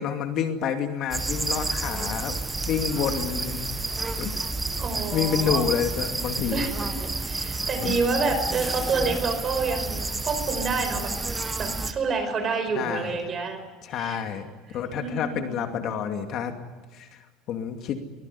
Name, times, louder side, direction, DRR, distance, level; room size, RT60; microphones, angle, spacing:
voice 1, 0.0-2.4 2.7-3.7 4.2-4.4 4.9-6.6 7.8-8.0 12.8-13.2 13.8-14.5 14.7-16.5 16.9-17.2 17.5-18.0, left 8 dB, 45° left, 5 dB, 2.5 m, -28 dB
sound 1, 1.1-11.9, right 3 dB, 10° right, 1.5 m, -30 dB
voice 2, 4.7-5.7 6.5-11.1 11.6-13.6 13.9-14.2 14.7-15.7, right 4 dB, 30° right, 8 dB, 5.2 m, -28 dB
23.5 x 20.0 x 10.0 m, 1.2 s
cardioid pair, 155°, 0 cm